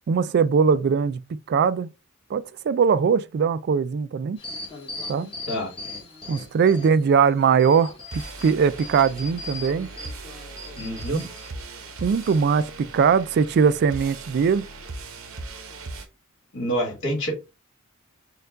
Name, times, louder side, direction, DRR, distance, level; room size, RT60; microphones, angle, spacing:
voice 1, 0.1-1.9 2.3-4.4 5.1-5.3 6.3-9.9 11.1-11.2 12.0-14.7, right 6 dB, 50° right, 0.3 m, -21 dB
sound 1, 4.4-7.1 7.5-11.5 12.0-12.4, left 2 dB, 25° left, 1.2 m, -39 dB
sound 2, 8.1-16.1, right 3 dB, 75° right, 0.8 m, -39 dB
voice 2, 10.8-11.2 16.5-17.3, equal, 65° left, 2.0 m, -27 dB
4.4 x 2.3 x 3.7 m
head